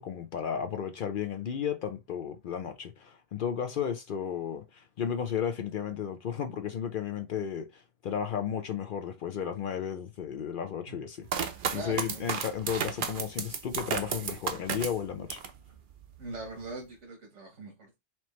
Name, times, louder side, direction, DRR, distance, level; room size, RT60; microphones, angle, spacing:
voice 1, 0.0-15.4, left 8 dB, 60° left, 0.6 m, -34 dB
sound 1, 11.3-15.6 16.0-16.7, right 6 dB, 55° right, 0.7 m, -33 dB
voice 2, 11.7-12.4 16.2-17.9, right 2 dB, 85° right, 1.4 m, -42 dB
4.4 x 2.9 x 3.0 m
omnidirectional pair, 1.2 m